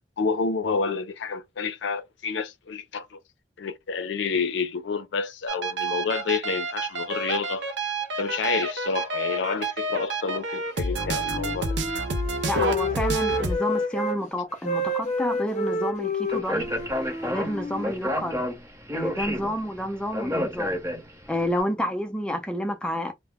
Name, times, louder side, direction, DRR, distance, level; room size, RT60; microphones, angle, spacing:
voice 1, 0.2-3.2 3.6-7.7 8.2-11.8, left 5 dB, 85° left, 0.4 m, -29 dB
sound 1, 5.5-13.6, right 2 dB, 80° right, 0.5 m, -29 dB
Wind instrument woodwind instrument, 10.8-14.2 14.5-18.4, left 1 dB, 40° left, 0.7 m, -30 dB
voice 2, 12.4-16.7 17.2-18.4 18.9-20.8 21.3-23.1, equal, 5° left, 0.4 m, -29 dB
Speech, 16.3-21.4, left 1 dB, 15° right, 0.8 m, -30 dB
2.1 x 2.0 x 3.4 m
head